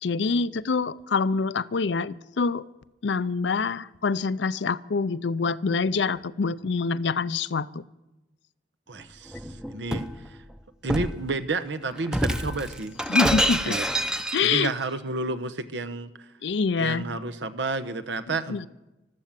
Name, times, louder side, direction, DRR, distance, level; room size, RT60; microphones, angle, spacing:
voice 1, 0.0-2.6 3.0-7.7 13.1-13.8 14.3-14.7 16.4-17.0 18.5-18.7, left 4 dB, 70° left, 18 dB, 0.5 m, -25 dB
voice 2, 8.9-9.4 9.7-10.4 10.8-13.0 13.7-13.9 14.4-16.3 16.7-18.7, right 3 dB, 75° right, 9 dB, 1.0 m, -31 dB
Shatter, 9.3-10.2 10.9-11.2 12.1-14.7, equal, 5° right, 0.7 m, -26 dB
14.0 x 13.0 x 7.4 m, 0.99 s
head